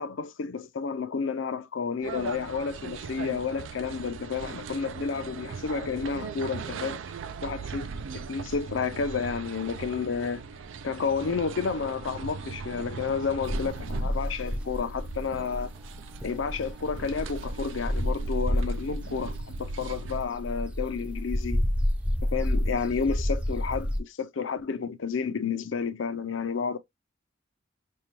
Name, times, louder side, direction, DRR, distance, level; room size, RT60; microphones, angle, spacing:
voice 1, 0.0-7.0 7.4-7.9 8.1-10.4 10.8-15.7 16.2-21.6 22.2-26.8, left 5 dB, 80° left, 0.5 m, -31 dB
sound 1, 2.0-20.3, right 4 dB, 80° right, 0.4 m, -38 dB
sound 2, 13.4-18.9 19.4-24.0, left 1 dB, 5° right, 0.5 m, -30 dB
5.4 x 2.3 x 2.9 m
head